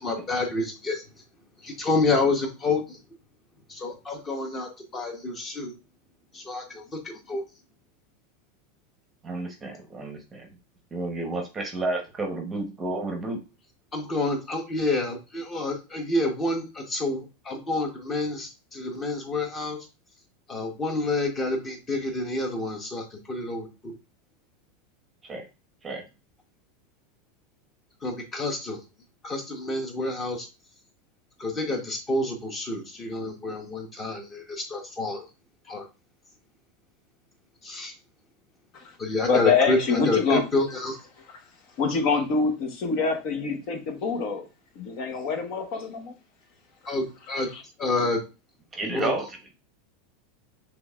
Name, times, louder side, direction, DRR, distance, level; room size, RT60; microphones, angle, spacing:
voice 1, 0.0-1.0 1.6-3.0 3.7-5.7 6.3-7.4 13.9-19.8 20.5-23.9 28.0-28.8 29.2-30.5 31.4-35.3 35.7-35.9 37.6-37.9 39.0-41.0 46.9-47.5 47.8-48.2 48.9-49.1, left 2 dB, 20° left, 3 dB, 1.1 m, -28 dB
voice 2, 9.2-10.5 10.9-13.4 25.2-25.5 25.8-26.0 48.7-49.5, right 2 dB, 15° right, 3 dB, 0.9 m, -31 dB
voice 3, 39.2-40.4 41.8-44.5 44.8-46.1, left 4 dB, 45° left, 5 dB, 0.9 m, -25 dB
6.1 x 3.4 x 2.4 m, 0.29 s
supercardioid pair, 165°, 0 cm